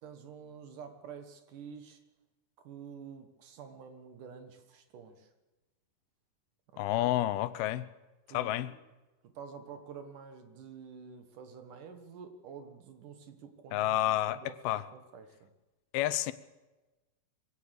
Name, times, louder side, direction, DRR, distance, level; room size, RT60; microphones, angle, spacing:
voice 1, 0.0-2.0 2.6-5.3 6.9-7.1 8.3-8.8 9.3-14.6 14.9-15.5, right 6 dB, 65° right, 2.9 m, -48 dB
voice 2, 6.8-7.9 8.3-8.7 13.7-14.8 15.9-16.3, left 14 dB, 90° left, 2.8 m, -30 dB
23.0 x 17.0 x 6.7 m
omnidirectional pair, 4.3 m